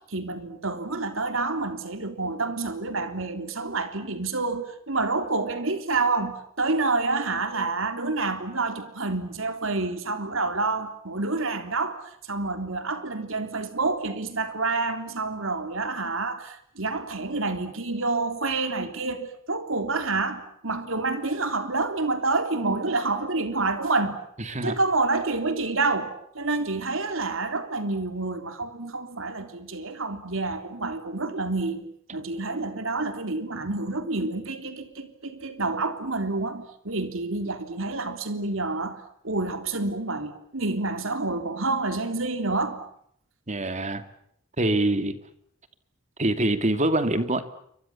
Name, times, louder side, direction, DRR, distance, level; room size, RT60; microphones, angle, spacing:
voice 1, 0.1-24.2 24.6-31.8 32.1-42.8, right 3 dB, 70° right, 8 dB, 3.5 m, -28 dB
voice 2, 24.5-24.8 43.5-44.0 44.6-45.2 46.2-47.4, right 1 dB, 35° right, 10 dB, 2.5 m, -24 dB
29.0 x 25.0 x 7.2 m, 0.70 s
head